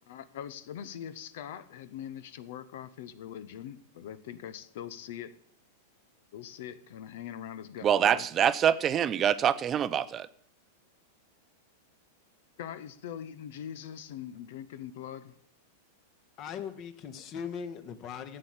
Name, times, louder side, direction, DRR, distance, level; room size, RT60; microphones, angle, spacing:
voice 1, 0.1-5.4 6.3-8.3 12.6-15.3, left 9 dB, 55° left, 1.0 m, -42 dB
voice 2, 7.8-10.3, right 9 dB, 25° right, 0.7 m, -25 dB
voice 3, 16.4-18.4, left 7 dB, 35° left, 1.8 m, -39 dB
14.5 x 8.9 x 8.6 m
figure-of-eight pair, 95°, 0 cm